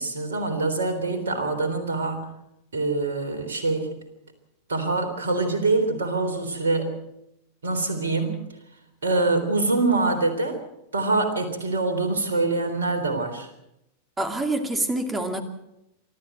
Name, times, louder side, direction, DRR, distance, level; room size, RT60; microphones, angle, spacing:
voice 1, 0.0-2.3 2.7-4.0 4.7-7.0 7.6-8.5 9.0-10.6 10.9-13.5, right 3 dB, 70° right, 7 dB, 3.7 m, -25 dB
voice 2, 14.2-15.4, right 2 dB, 15° right, 7 dB, 2.5 m, -26 dB
24.5 x 13.5 x 7.9 m, 0.85 s
figure-of-eight pair, 90°, 0 cm